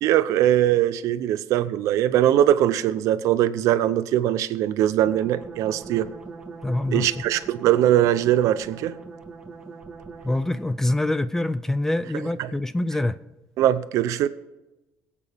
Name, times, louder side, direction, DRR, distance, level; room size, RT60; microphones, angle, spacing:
voice 1, 0.0-6.0 6.9-9.0 12.4-12.5 13.6-14.3, right 12 dB, 75° right, 0.7 m, -21 dB
sound 1, 5.0-10.8, right 4 dB, 15° right, 1.5 m, -41 dB
voice 2, 6.6-7.1 10.2-13.2, left 1 dB, 5° left, 0.4 m, -25 dB
23.0 x 8.6 x 3.6 m
cardioid pair, 170°, 6 cm